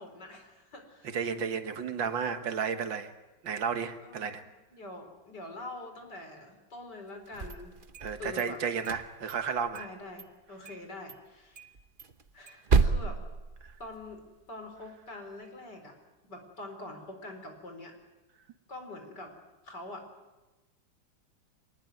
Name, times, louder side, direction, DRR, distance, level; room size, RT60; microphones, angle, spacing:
voice 1, 0.0-1.2 4.0-7.7 8.1-8.6 9.7-11.7 12.3-13.2 13.8-16.0 16.2-17.9 18.7-19.3 19.6-20.1, left 2 dB, 60° left, 5 dB, 4.8 m, -45 dB
voice 2, 1.0-3.1 3.4-4.4 8.0-9.9, right 6 dB, 75° right, 8 dB, 2.2 m, -32 dB
sound 1, 7.3-8.4 8.8-9.9 10.2-10.3 10.7-10.8 11.1-11.2 11.6-14.1, right 4 dB, 35° right, 0.9 m, -30 dB
25.0 x 19.5 x 9.3 m, 1.1 s
omnidirectional pair, 2.1 m